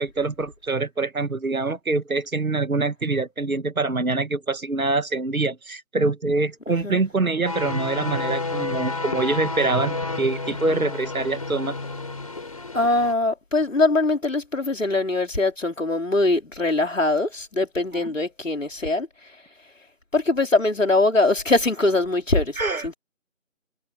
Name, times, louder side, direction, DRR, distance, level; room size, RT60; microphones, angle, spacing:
voice 1, 0.0-11.8 17.9-18.1 22.6-22.9, right 3 dB, 85° right, 1.8 m, -25 dB
voice 2, 6.7-7.0 12.7-19.1 20.1-22.9, left 2 dB, 65° left, 4.9 m, -22 dB
sound 1, 7.5-13.1, left 3 dB, 25° left, 4.3 m, -30 dB
figure-of-eight pair, 175°, 41 cm